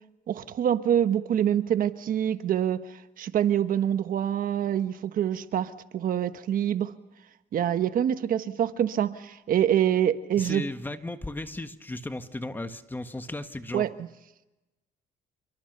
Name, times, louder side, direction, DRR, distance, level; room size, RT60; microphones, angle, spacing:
voice 1, 0.3-6.9 7.5-10.6 13.7-14.1, right 10 dB, 55° right, 10 dB, 1.3 m, -26 dB
voice 2, 10.4-13.8, left 2 dB, 10° left, 8 dB, 1.6 m, -35 dB
29.0 x 22.5 x 6.8 m, 0.97 s
cardioid pair, 110°, 17 cm